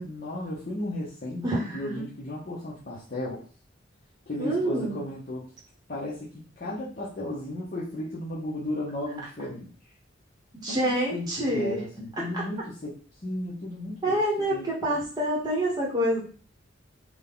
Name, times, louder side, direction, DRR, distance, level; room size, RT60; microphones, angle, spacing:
voice 1, 0.0-3.4 4.3-5.4 5.9-9.9 10.7-12.9 13.2-15.0, left 1 dB, 40° left, -8 dB, 0.8 m, -35 dB
voice 2, 1.4-2.0 4.4-5.0 10.6-11.8 12.3-12.4 14.0-16.2, right 1 dB, 20° right, -3 dB, 1.0 m, -27 dB
3.6 x 2.2 x 3.8 m, 0.39 s
head